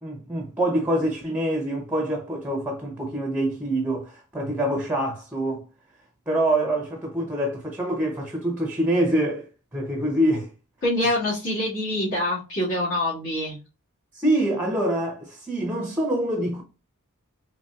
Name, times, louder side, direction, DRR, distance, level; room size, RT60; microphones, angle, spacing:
voice 1, 0.0-5.6 6.3-10.5 14.1-16.6, right 1 dB, 10° right, 0.6 m, -25 dB
voice 2, 10.8-13.6, left 1 dB, 55° left, 1.9 m, -25 dB
4.2 x 2.8 x 2.3 m
head